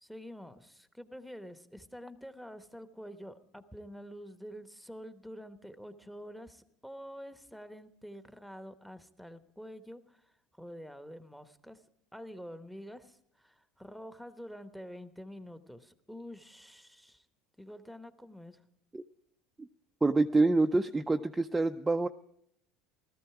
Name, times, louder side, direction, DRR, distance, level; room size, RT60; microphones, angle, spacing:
voice 1, 0.0-10.2 10.6-11.8 12.1-17.2 17.6-18.6, equal, ahead, 10 dB, 1.0 m, -47 dB
voice 2, 20.0-22.1, right 3 dB, 15° right, 6 dB, 0.5 m, -26 dB
15.5 x 13.0 x 4.8 m, 0.71 s
hypercardioid pair, 85°, 0 cm